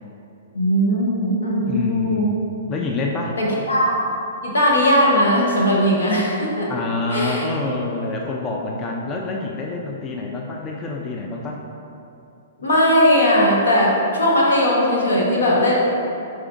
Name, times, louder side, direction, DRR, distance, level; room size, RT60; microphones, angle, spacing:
voice 1, 0.5-2.3 3.4-4.0 4.4-6.7 7.1-7.4 12.6-15.7, equal, 80° left, -4 dB, 1.1 m, -18 dB
voice 2, 1.7-2.4 2.7-3.4 6.7-11.6, left 3 dB, 25° left, 0 dB, 0.4 m, -27 dB
4.8 x 4.2 x 2.4 m, 2.7 s
hypercardioid pair, 125°, 0 cm